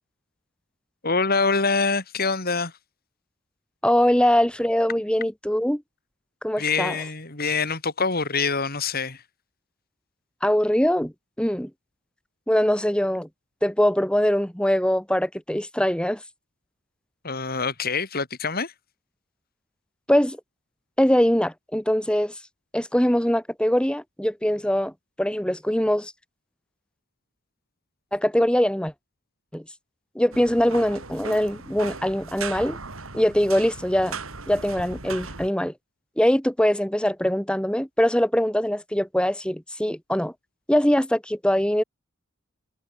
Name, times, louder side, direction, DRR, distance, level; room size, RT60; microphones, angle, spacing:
voice 1, 1.0-2.7 6.6-9.2 17.2-18.7, left 4 dB, 45° left, 4.0 m, -25 dB
voice 2, 3.8-5.8 6.4-7.0 10.4-11.7 12.5-13.3 13.6-16.2 20.1-20.4 21.0-22.3 22.7-24.9 25.2-26.1 28.1-28.9 29.5-29.6 30.2-32.8 33.1-34.2 34.5-35.7 36.2-40.3 40.7-41.8, equal, 5° left, 1.8 m, -22 dB
sound 1, 30.3-35.5, right 4 dB, 75° right, 3.4 m, -37 dB
head